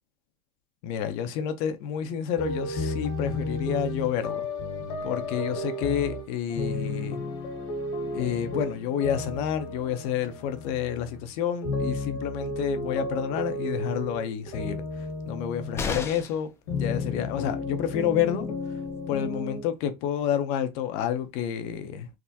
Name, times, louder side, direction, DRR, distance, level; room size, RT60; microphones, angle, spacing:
voice 1, 0.8-4.5 5.0-7.2 8.1-18.5 19.1-22.1, left 9 dB, 55° left, 0.7 m, -29 dB
sound 1, 2.4-11.3 11.6-16.2 16.7-19.7, left 2 dB, 75° left, 1.3 m, -33 dB
sound 2, 15.7-16.5 18.4-18.5 18.9-19.0, left 5 dB, 20° left, 0.5 m, -32 dB
3.5 x 2.1 x 2.8 m
supercardioid pair, 125°, 13 cm